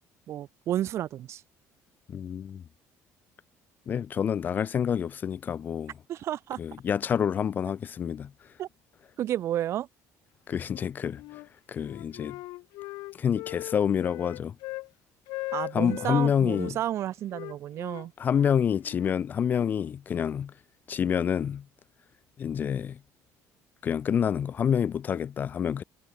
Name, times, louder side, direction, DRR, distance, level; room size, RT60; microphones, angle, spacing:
voice 1, 0.3-1.4 6.1-6.6 8.6-8.7 9.2-9.9 15.5-18.1, right 12 dB, 50° right, 1.1 m, -31 dB
voice 2, 2.1-2.6 3.9-5.9 6.6-8.5 10.5-11.4 11.7-12.4 13.1-14.6 15.7-16.8 18.2-20.5 20.9-21.7 22.4-23.0 23.8-25.8, left 8 dB, 30° left, 0.4 m, -28 dB
Wind instrument woodwind instrument, 10.6-11.5 11.8-14.9 15.3-16.7 17.3-19.8, left 21 dB, 85° left, 3.3 m, -40 dB
cardioid pair, 155°, 6 cm